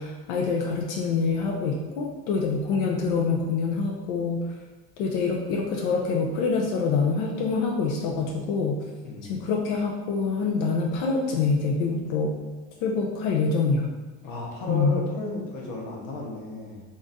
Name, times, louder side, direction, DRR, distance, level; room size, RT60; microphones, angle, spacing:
voice 1, 0.0-4.4 5.0-8.8 9.2-12.4 12.8-13.9 14.7-15.0, left 4 dB, 90° left, 0 dB, 0.6 m, -25 dB
voice 2, 9.0-9.3 14.2-16.8, left 1 dB, 60° left, -2 dB, 0.8 m, -33 dB
3.8 x 2.4 x 3.9 m, 1.3 s
cardioid pair, 180°, 34 cm